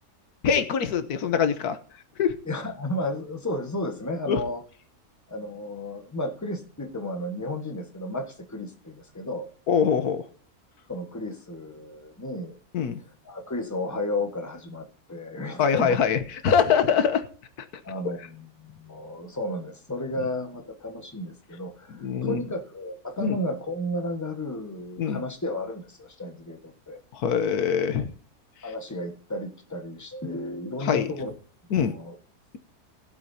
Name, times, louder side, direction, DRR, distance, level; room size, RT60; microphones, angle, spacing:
voice 1, 0.4-1.8 2.2-2.3 4.3-4.4 9.7-10.2 12.7-13.0 15.6-17.2 22.0-22.4 23.2-23.4 25.0-25.2 27.1-28.1 30.8-31.1 31.7-31.9, left 7 dB, 85° left, 10 dB, 1.5 m, -23 dB
voice 2, 2.4-4.6 5.3-9.5 10.9-12.6 13.0-16.0 17.8-27.0 28.6-31.3 31.7-32.2, left 1 dB, 10° left, 5 dB, 1.4 m, -33 dB
19.5 x 7.9 x 2.8 m, 0.44 s
omnidirectional pair, 1.6 m